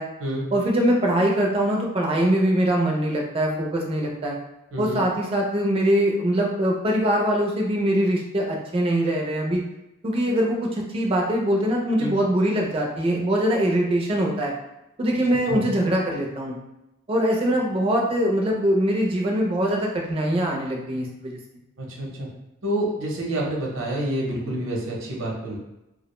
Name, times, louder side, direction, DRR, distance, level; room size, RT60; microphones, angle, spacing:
voice 1, 0.5-4.4 4.8-9.6 10.0-14.5 15.0-16.5 17.1-21.4, right 1 dB, 30° right, -1 dB, 0.4 m, -22 dB
voice 2, 21.8-22.3 22.6-25.6, right 1 dB, 75° right, -3 dB, 0.7 m, -28 dB
2.4 x 2.0 x 2.9 m, 0.93 s
head